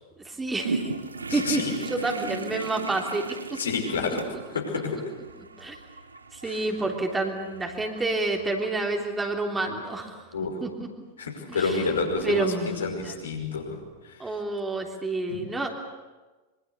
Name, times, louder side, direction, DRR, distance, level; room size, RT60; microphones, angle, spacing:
voice 1, 0.3-0.9 1.3-1.6 1.9-3.3 5.6-5.8 6.3-10.2 10.6-10.9 11.5-11.9 12.2-13.1 14.2-15.7, right 2 dB, 10° right, 2 dB, 3.4 m, -29 dB
sound 1, 0.6-8.7, right 3 dB, 75° right, 1.5 m, -37 dB
voice 2, 1.3-1.7 3.6-5.0 6.4-6.6 10.3-10.6 11.2-13.8 15.3-15.5, left 4 dB, 70° left, 2 dB, 5.5 m, -29 dB
25.0 x 24.5 x 8.2 m, 1.2 s
figure-of-eight pair, 90°, 0 cm